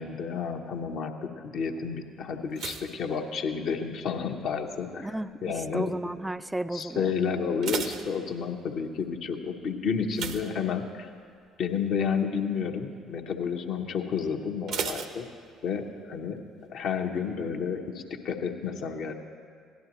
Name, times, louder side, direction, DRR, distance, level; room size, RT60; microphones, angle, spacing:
voice 1, 0.0-5.1 5.4-5.9 6.7-11.1 11.6-15.3 15.6-16.4 16.7-19.2, left 6 dB, 60° left, 4 dB, 0.9 m, -31 dB
sound 1, 2.5-4.0 4.3-4.8 5.4-5.8 6.0-6.1 6.5-6.6 7.3-8.8 10.1-11.2 11.6-11.9 12.2-12.3 14.7-15.9 16.1-16.2, right 6 dB, 60° right, 0.7 m, -36 dB
voice 2, 5.0-7.1, right 1 dB, 10° right, 13 dB, 0.4 m, -33 dB
17.0 x 11.5 x 3.0 m, 2.2 s
hypercardioid pair, 55°, 0 cm